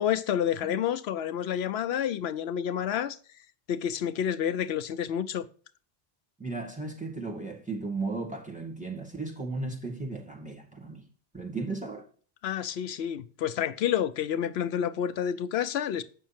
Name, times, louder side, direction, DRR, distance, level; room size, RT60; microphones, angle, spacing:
voice 1, 0.0-3.2 3.7-5.5 12.4-16.0, left 9 dB, 80° left, 0.8 m, -29 dB
voice 2, 6.4-11.0 11.3-12.1, right 3 dB, 5° right, 2.0 m, -35 dB
8.6 x 6.3 x 5.8 m
omnidirectional pair, 1.1 m